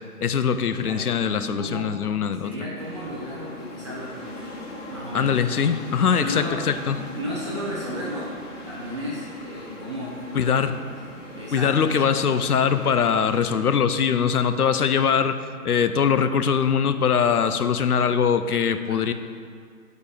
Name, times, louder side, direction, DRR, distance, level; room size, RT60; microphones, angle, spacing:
voice 1, 0.2-2.5 5.1-7.0 10.3-10.7 11.5-15.4 15.6-19.1, left 7 dB, 70° left, 11 dB, 0.7 m, -22 dB
voice 2, 0.8-1.1 1.6-2.0 2.4-4.6 4.9-5.7 6.1-6.7 7.1-10.5 11.3-11.7 18.9-19.0, equal, 20° right, -7 dB, 0.6 m, -34 dB
sound 1, 2.8-13.4, left 1 dB, 50° left, 1.8 m, -39 dB
8.1 x 5.2 x 4.7 m, 2.2 s
figure-of-eight pair, 145°, 46 cm